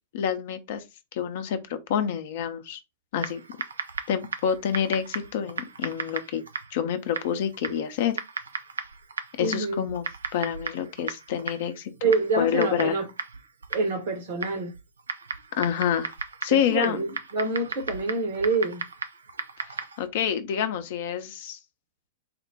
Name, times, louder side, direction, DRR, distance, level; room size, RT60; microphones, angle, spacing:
voice 1, 0.1-0.8 1.1-2.8 3.1-3.4 4.1-6.4 6.7-8.2 9.4-10.1 10.3-11.9 12.4-13.0 15.6-16.1 16.4-17.0 20.0-21.6, left 8 dB, 50° left, 0.6 m, -27 dB
Typing, 3.2-20.1, right 5 dB, 75° right, 0.5 m, -36 dB
voice 2, 9.4-9.8 12.0-13.1 13.7-14.7 16.5-18.8, right 3 dB, 55° right, 1.2 m, -26 dB
4.2 x 2.1 x 4.0 m
figure-of-eight pair, 100°, 0 cm